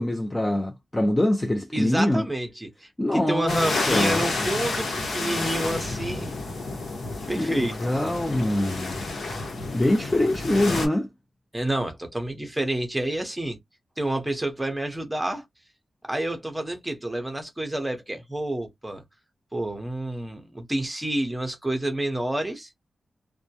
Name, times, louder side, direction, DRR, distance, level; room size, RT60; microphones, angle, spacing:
voice 1, 0.0-2.3 3.0-4.2 7.4-9.0 9.7-11.1, left 1 dB, 15° left, 0.4 m, -24 dB
voice 2, 1.7-6.3 7.3-7.8 11.5-13.6 14.0-15.4 16.1-19.0 19.5-22.7, right 1 dB, 10° right, 0.8 m, -29 dB
sound 1, 3.5-10.9, left 3 dB, 85° left, 0.9 m, -30 dB
2.2 x 2.1 x 2.8 m
wide cardioid pair, 125°, 0 cm